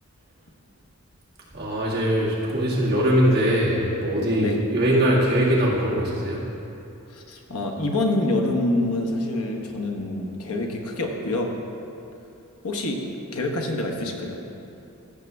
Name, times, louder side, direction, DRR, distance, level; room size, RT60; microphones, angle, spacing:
voice 1, 1.5-6.4, equal, 45° right, -6 dB, 2.0 m, -21 dB
voice 2, 7.1-11.5 12.6-13.0 13.3-14.4, left 2 dB, 85° left, 2 dB, 1.0 m, -26 dB
15.0 x 6.5 x 3.4 m, 2.8 s
head